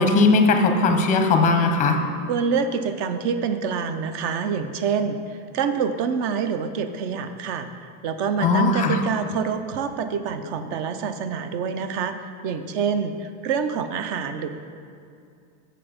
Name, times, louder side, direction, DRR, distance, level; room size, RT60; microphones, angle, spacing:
voice 1, 0.0-2.0 8.4-9.0, left 3 dB, 20° left, 5 dB, 0.6 m, -18 dB
voice 2, 2.3-12.1 12.4-14.5, right 6 dB, 50° right, 9 dB, 0.7 m, -26 dB
7.7 x 6.7 x 5.1 m, 2.4 s
supercardioid pair, 160°, 43 cm